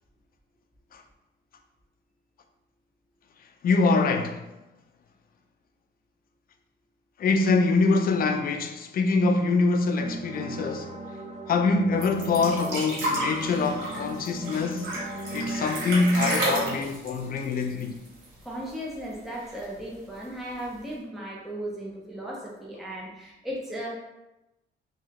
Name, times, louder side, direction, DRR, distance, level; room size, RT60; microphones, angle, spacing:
voice 1, 3.6-4.5 7.2-10.9 11.5-14.9 15.3-18.0, left 3 dB, 50° left, 0.4 m, -24 dB
sound 1, 10.0-16.8, right 1 dB, 35° right, 0.5 m, -37 dB
sound 2, 12.0-18.4 18.7-18.8 19.1-19.8 20.6-20.7, right 1 dB, 90° right, 1.3 m, -31 dB
voice 2, 18.4-23.9, right 1 dB, ahead, 0.7 m, -36 dB
3.0 x 2.8 x 2.9 m
cardioid pair, 90°, 20 cm